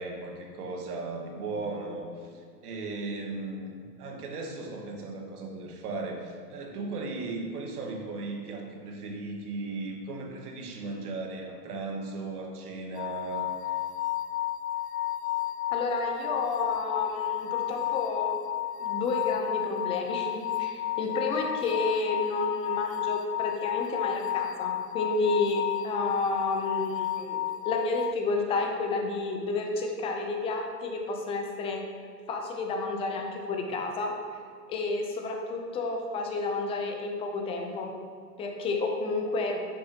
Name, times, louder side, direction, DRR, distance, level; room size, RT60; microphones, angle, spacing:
voice 1, 0.0-3.7 4.0-13.7, right 3 dB, 70° right, 1 dB, 1.6 m, -36 dB
sound 1, 13.0-28.1, left 13 dB, 85° left, 0.6 m, -32 dB
voice 2, 15.7-18.4 18.8-27.4 27.6-31.8 32.3-34.1 34.7-37.9 38.4-39.6, left 3 dB, 15° left, 2 dB, 0.5 m, -30 dB
10.0 x 6.4 x 2.9 m, 2.1 s
hypercardioid pair, 130°, 47 cm